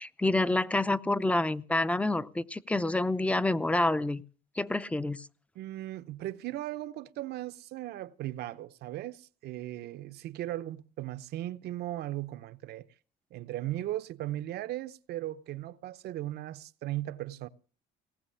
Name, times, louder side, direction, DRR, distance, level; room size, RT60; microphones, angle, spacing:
voice 1, 0.0-4.2 4.6-5.3, left 2 dB, 5° left, 0.6 m, -28 dB
voice 2, 5.6-12.9 13.3-17.5, right 14 dB, 75° right, 0.8 m, -37 dB
18.5 x 6.4 x 10.0 m
cardioid pair, 110°, 17 cm